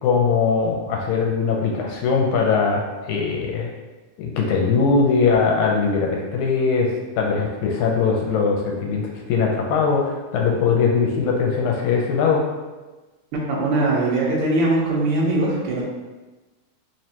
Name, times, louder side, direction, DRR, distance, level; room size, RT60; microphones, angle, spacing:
voice 1, 0.0-3.7 4.2-6.9 7.2-12.4, left 5 dB, 80° left, 0 dB, 2.0 m, -21 dB
voice 2, 13.3-15.8, right 2 dB, 70° right, -4 dB, 1.3 m, -21 dB
4.5 x 3.2 x 2.8 m, 1.2 s
omnidirectional pair, 3.5 m